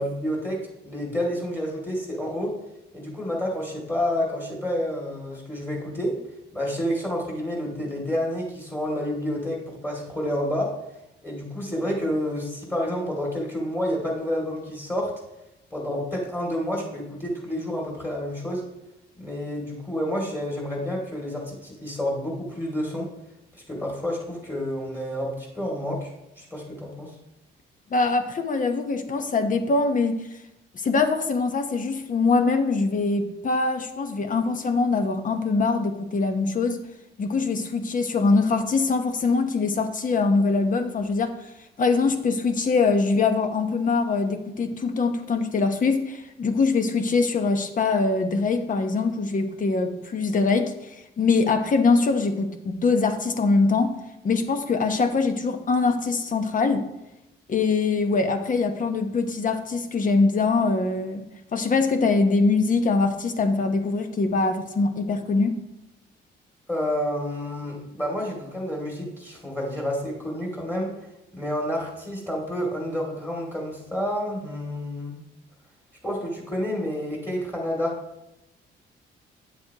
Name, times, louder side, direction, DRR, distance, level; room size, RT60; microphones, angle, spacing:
voice 1, 0.0-2.6 2.9-6.2 6.5-10.7 11.2-15.1 15.7-18.7 19.2-23.1 23.7-27.1 66.7-70.9 71.3-75.2 76.0-78.0, equal, 10° left, -2 dB, 2.4 m, -29 dB
voice 2, 27.9-30.2 30.7-36.8 37.2-41.3 41.8-54.0 54.2-56.9 57.5-61.2 61.5-65.6, left 4 dB, 40° left, 7 dB, 0.9 m, -23 dB
9.0 x 7.2 x 2.9 m, 0.92 s
cardioid pair, 90°, 20 cm